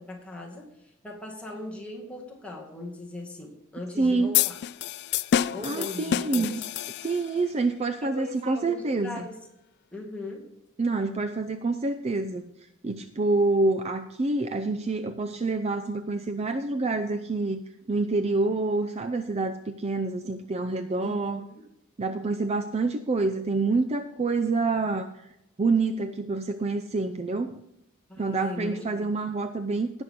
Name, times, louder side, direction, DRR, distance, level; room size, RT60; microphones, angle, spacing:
voice 1, 0.0-4.6 5.5-6.6 8.0-9.4 9.9-10.5 21.0-21.6 28.1-29.1, left 2 dB, 5° left, -2 dB, 2.1 m, -39 dB
voice 2, 4.0-4.3 5.6-6.6 7.0-9.2 10.8-12.5 12.8-17.6 17.9-21.4 22.0-25.1 25.6-27.6 28.2-30.0, right 3 dB, 30° right, 9 dB, 0.5 m, -27 dB
sound 1, 4.3-7.4, left 10 dB, 50° left, 0.3 m, -28 dB
17.5 x 6.1 x 3.6 m, 0.83 s
head